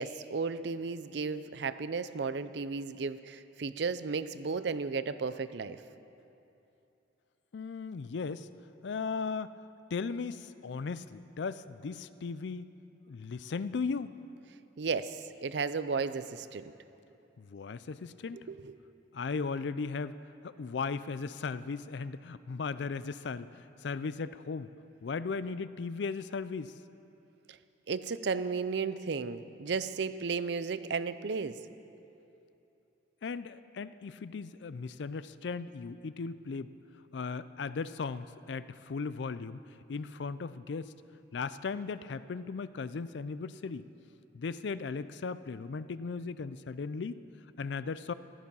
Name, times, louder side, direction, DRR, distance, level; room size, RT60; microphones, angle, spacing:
voice 1, 0.0-5.8 14.8-16.7 18.3-18.7 27.5-27.6 27.9-31.6, right 5 dB, 65° right, 13 dB, 0.5 m, -34 dB
voice 2, 7.5-8.5 8.8-9.5 9.9-12.7 13.1-14.2 17.4-18.4 19.1-20.2 20.4-24.7 25.0-26.8 33.2-36.7 37.1-39.6 39.9-40.9 41.3-43.9 44.3-47.2 47.6-48.1, left 4 dB, 70° left, 14 dB, 0.4 m, -37 dB
15.0 x 12.5 x 5.5 m, 2.8 s
head